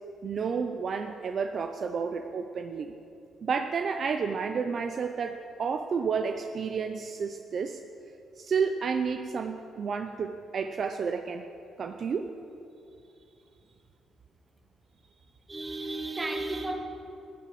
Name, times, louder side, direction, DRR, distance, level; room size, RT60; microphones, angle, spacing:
voice 1, 0.2-2.9 3.4-7.8 8.4-11.5 11.8-12.3, right 5 dB, 50° right, 6 dB, 0.6 m, -31 dB
voice 2, 15.5-16.8, right 2 dB, 20° right, 4 dB, 1.7 m, -33 dB
13.5 x 9.4 x 7.8 m, 2.6 s
cardioid pair, 90°, 0 cm